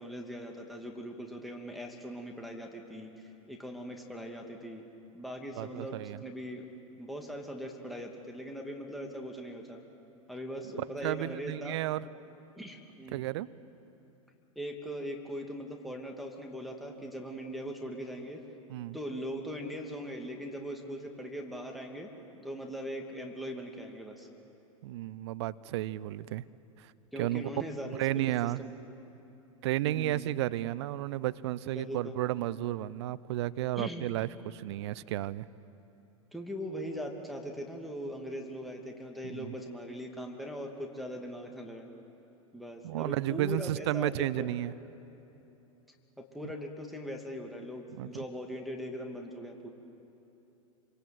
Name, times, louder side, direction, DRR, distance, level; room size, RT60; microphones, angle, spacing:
voice 1, 0.0-4.8 5.1-6.7 7.0-9.8 10.3-11.8 12.6-13.2 14.6-18.4 18.9-22.1 22.4-24.3 27.1-28.7 29.8-30.3 31.7-32.1 33.8-34.0 36.3-41.9 42.5-44.5 45.4-45.5 46.2-49.7, equal, ahead, 1 dB, 2.6 m, -40 dB
voice 2, 5.5-6.2 11.0-12.0 13.1-13.5 18.7-19.0 24.8-26.4 26.8-26.9 27.2-27.5 27.9-28.6 29.6-35.5 39.2-39.6 42.8-44.7 48.0-48.1, right 15 dB, 55° right, 18 dB, 0.7 m, -32 dB
26.0 x 25.5 x 7.9 m, 3.0 s
figure-of-eight pair, 95°, 18 cm